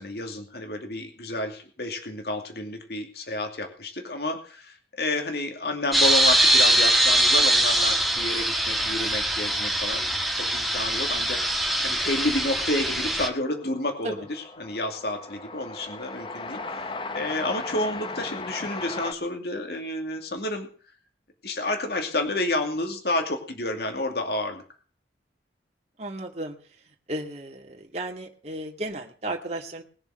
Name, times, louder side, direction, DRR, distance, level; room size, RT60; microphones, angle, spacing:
voice 1, 0.0-20.7 21.4-24.6, left 1 dB, 60° left, 5 dB, 2.6 m, -30 dB
sound 1, 5.9-13.3, right 1 dB, ahead, 1.7 m, -22 dB
Train, 12.0-19.1, left 3 dB, 25° left, 0.9 m, -37 dB
voice 2, 26.0-26.6 27.1-29.8, right 1 dB, 35° right, 1 dB, 2.2 m, -34 dB
21.0 x 7.1 x 6.5 m, 0.42 s
head